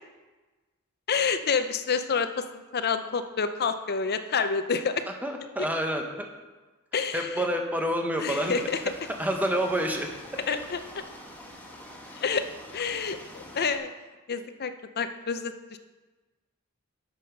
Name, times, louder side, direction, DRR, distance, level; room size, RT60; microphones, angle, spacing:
voice 1, 1.1-5.1 6.9-7.4 8.2-8.8 10.5-11.0 12.1-12.5 12.7-13.9 14.3-15.8, left 5 dB, 50° left, 9 dB, 0.6 m, -28 dB
voice 2, 5.2-6.3 7.1-8.6 9.2-10.1, equal, 10° right, 3 dB, 1.0 m, -28 dB
sound 1, 8.3-13.8, left 1 dB, 10° left, 1.3 m, -46 dB
8.6 x 7.0 x 5.8 m, 1.2 s
head